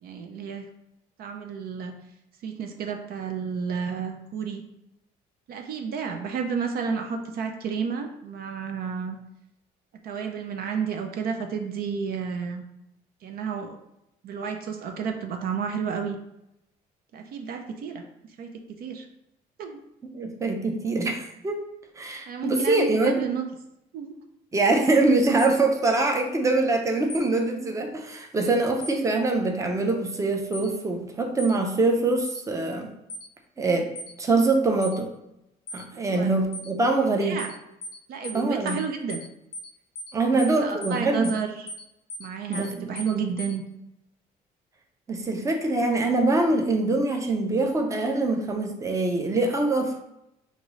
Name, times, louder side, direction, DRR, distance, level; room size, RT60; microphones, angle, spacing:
voice 1, 0.0-0.7 1.2-2.0 2.4-4.6 5.5-9.2 10.0-12.6 13.2-13.8 14.2-16.2 17.1-18.0 18.4-19.1 19.6-19.8 22.3-23.4 23.9-24.1 36.1-36.4 37.0-37.5 38.1-39.2 40.3-41.7 42.2-43.6, right 6 dB, 65° right, 5 dB, 0.5 m, -31 dB
voice 2, 20.1-21.6 22.0-23.1 24.5-32.9 33.6-33.9 34.2-35.1 35.7-37.4 38.3-38.8 40.1-41.3 42.5-42.9 45.1-50.0, right 2 dB, 20° right, 3 dB, 0.6 m, -24 dB
sound 1, 25.4-25.6 27.1-27.3 28.8-29.0 30.5-30.7 31.4-31.6 32.2-32.4 33.1-33.3 34.0-34.1 34.8-35.0 35.7-35.8 36.5-36.7 37.4-37.6 37.8-38.0 38.2-38.4 38.7-38.8 39.1-39.3 39.5-39.7 40.0-40.1 40.4-40.6 40.8-41.0 41.2-41.4 41.7-41.8 42.1-42.3 42.5-42.7 43.0-43.1 43.4-43.5, left 1 dB, 55° left, 0.6 m, -37 dB
5.2 x 2.6 x 3.1 m, 0.85 s
cardioid pair, 110°, 17 cm